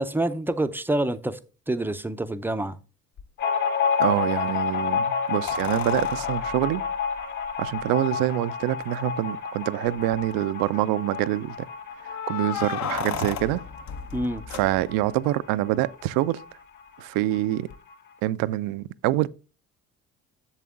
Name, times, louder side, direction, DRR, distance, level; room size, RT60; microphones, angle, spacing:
voice 1, 0.0-1.4 1.7-2.8 14.1-14.4, right 1 dB, 5° right, 0.5 m, -27 dB
sound 1, 3.2-3.3 5.5-7.9 8.8-8.9 9.2-9.3 9.9-10.3 12.0-15.2 17.7-17.8, left 8 dB, 40° left, 0.8 m, -35 dB
sound 2, 3.4-16.5 16.8-16.9 17.2-17.9, left 6 dB, 60° left, 2.3 m, -30 dB
voice 2, 4.0-6.8 7.6-11.5 12.1-13.6 14.5-16.4 17.0-17.7 18.2-19.3, right 15 dB, 55° right, 0.5 m, -26 dB
11.0 x 7.5 x 2.4 m
figure-of-eight pair, 55°, 43 cm